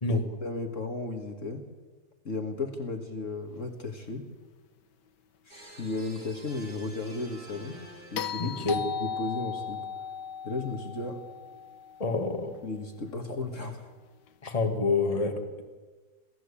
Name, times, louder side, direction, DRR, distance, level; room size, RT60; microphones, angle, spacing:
voice 1, 0.1-1.6 2.2-4.3 5.5-7.8 8.1-8.6 9.0-9.9 10.4-11.2 12.6-13.9, left 3 dB, 45° left, 5 dB, 2.1 m, -35 dB
sound 1, 5.5-9.2, right 2 dB, 90° right, 5.1 m, -50 dB
sound 2, 8.2-12.4 14.7-14.8, left 7 dB, 85° left, 1.6 m, -36 dB
voice 2, 8.4-8.8 12.0-12.5 14.4-15.6, left 3 dB, 20° left, 5 dB, 2.0 m, -28 dB
27.5 x 16.5 x 8.5 m, 1.4 s
omnidirectional pair, 1.8 m